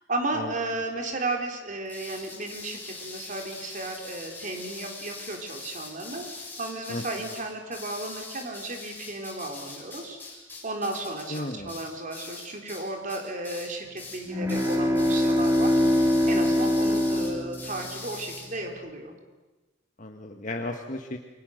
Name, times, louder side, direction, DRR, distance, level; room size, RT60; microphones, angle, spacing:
voice 1, 0.0-10.2 10.6-19.1, right 2 dB, 45° right, 3 dB, 3.8 m, -34 dB
sound 1, 1.9-12.8 13.1-13.7 14.0-14.2 14.5-18.5, left 3 dB, 10° left, 6.8 m, -42 dB
voice 2, 11.3-11.8 20.0-21.2, left 1 dB, 45° left, 3 dB, 1.6 m, -34 dB
sound 2, 14.2-18.3, left 1 dB, 15° right, 3.5 m, -23 dB
28.5 x 24.0 x 6.6 m, 1.2 s
head